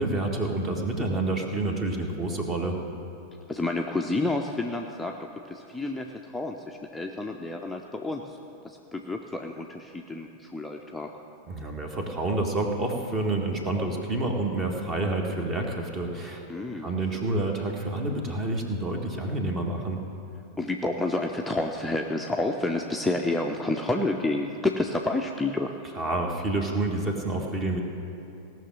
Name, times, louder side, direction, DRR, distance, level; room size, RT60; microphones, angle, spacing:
voice 1, 0.0-2.8 11.5-20.0 25.9-27.8, right 2 dB, 25° right, 2 dB, 1.7 m, -28 dB
voice 2, 3.5-5.2 5.5-8.4 8.6-11.1 16.5-16.9 20.6-25.7, left 2 dB, 5° left, 1 dB, 0.6 m, -29 dB
17.5 x 6.2 x 7.4 m, 2.7 s
figure-of-eight pair, 90°, 0 cm